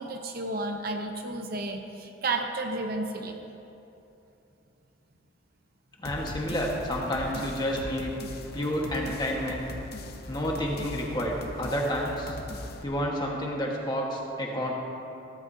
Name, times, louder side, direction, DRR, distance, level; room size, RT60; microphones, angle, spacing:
voice 1, 0.0-3.4, right 2 dB, 45° right, 3 dB, 0.8 m, -32 dB
sound 1, 6.0-12.8, left 2 dB, 50° left, 0.8 m, -40 dB
voice 2, 6.0-8.1 8.5-9.7 10.3-12.4 12.8-14.7, equal, 20° left, -1 dB, 1.4 m, -30 dB
16.0 x 13.5 x 2.8 m, 2.9 s
head